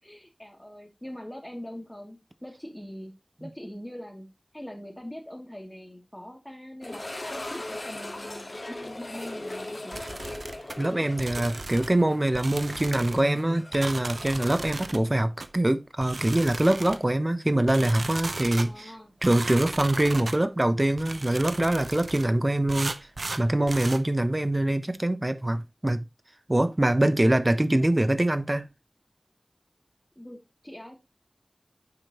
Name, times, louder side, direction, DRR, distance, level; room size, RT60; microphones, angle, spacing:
voice 1, 0.0-3.1 3.4-4.3 4.5-7.0 7.3-10.4 18.6-19.1 30.2-31.0, equal, 10° left, 2.5 m, -42 dB
sound 1, 6.8-15.7 16.0-16.1 16.7-16.8 19.4-19.5, left 1 dB, 55° left, 1.7 m, -39 dB
sound 2, 9.9-10.8 11.2-12.0 12.3-13.2 13.7-15.0 15.4-15.5 16.0-17.1 17.7-18.7 19.2-20.4 21.0-22.3 22.7-24.0, right 2 dB, 80° right, 0.7 m, -36 dB
voice 2, 10.8-18.9 19.2-23.0 23.4-26.0 26.5-28.7, right 1 dB, 35° right, 0.9 m, -24 dB
9.5 x 5.1 x 2.9 m
wide cardioid pair, 50°, 0 cm